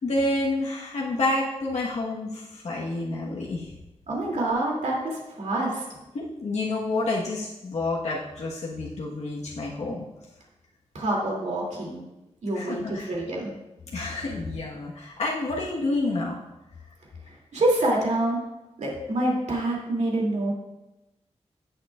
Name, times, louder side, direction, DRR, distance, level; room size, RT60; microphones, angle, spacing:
voice 1, 0.0-3.7 6.1-10.1 12.5-13.1 13.9-16.4, left 2 dB, 75° left, -4 dB, 1.3 m, -29 dB
voice 2, 4.1-5.8 10.9-12.0 12.4-13.5 17.3-18.4 18.8-20.5, right 1 dB, 85° right, -2 dB, 2.6 m, -26 dB
17.0 x 6.6 x 2.4 m, 0.98 s
wide cardioid pair, 160°, 12 cm